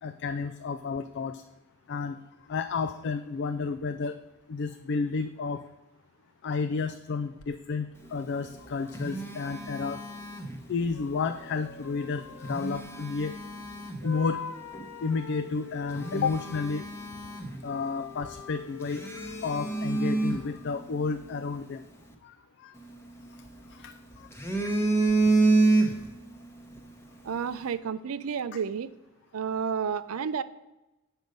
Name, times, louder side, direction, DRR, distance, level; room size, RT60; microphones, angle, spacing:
voice 1, 0.0-1.4 1.9-2.2 2.5-4.2 4.5-5.6 6.4-10.0 10.7-13.3 14.0-14.4 15.0-16.9 17.6-19.0 19.4-21.8 22.2-22.3 22.6-22.7 23.7-23.9 24.6-24.7, left 4 dB, 50° left, 9 dB, 0.3 m, -31 dB
sound 1, 7.4-7.5 10.9-13.7 14.0-16.9 17.5-20.5, left 5 dB, 75° left, 0.8 m, -44 dB
Telephone, 8.4-11.0 12.2-14.1 14.7-14.9 15.4-15.5 15.9-18.0 18.2-18.3 18.8-21.2 22.8-23.7 24.1-26.3 26.6-26.8, right 3 dB, 10° left, 0.9 m, -28 dB
voice 2, 27.2-28.9 29.3-30.4, right 7 dB, 75° right, 15 dB, 0.4 m, -31 dB
7.9 x 6.4 x 5.3 m, 1.0 s
head